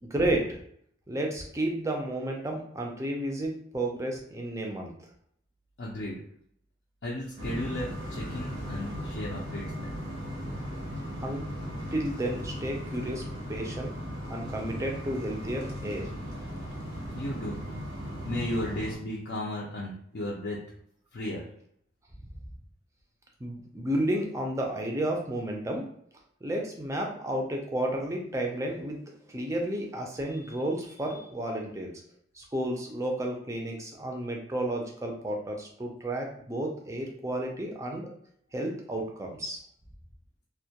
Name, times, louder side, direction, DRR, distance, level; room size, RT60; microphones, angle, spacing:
voice 1, 0.0-0.6 1.1-4.9 11.2-11.4 11.9-13.2 13.5-13.9 14.3-16.1 23.4-25.9 26.4-29.0 29.3-31.9 32.4-38.1 38.5-39.6, right 1 dB, 15° right, 0 dB, 0.4 m, -32 dB
voice 2, 5.8-6.2 7.0-9.9 17.1-17.7 18.2-20.6 21.1-21.4, left 1 dB, 60° left, -5 dB, 0.4 m, -35 dB
sound 1, 7.4-19.0, equal, 80° right, 0.6 m, -37 dB
2.2 x 2.2 x 2.8 m, 0.67 s
head